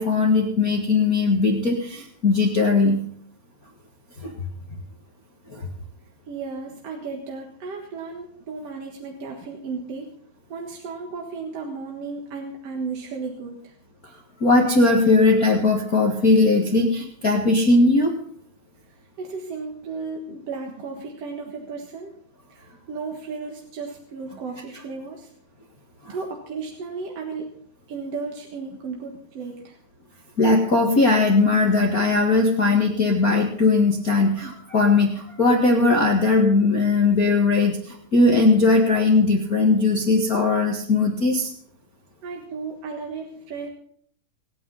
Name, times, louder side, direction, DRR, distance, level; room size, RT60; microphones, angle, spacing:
voice 1, 0.0-3.0 4.2-4.3 5.5-5.7 14.4-18.2 26.0-26.1 30.4-41.5, left 3 dB, 40° left, 0 dB, 1.4 m, -19 dB
voice 2, 6.3-10.1 10.5-13.7 19.2-22.1 22.5-25.3 26.1-27.5 27.9-29.8 42.2-43.7, right 4 dB, 55° right, 1 dB, 2.3 m, -34 dB
27.0 x 9.1 x 4.1 m, 0.62 s
omnidirectional pair, 4.1 m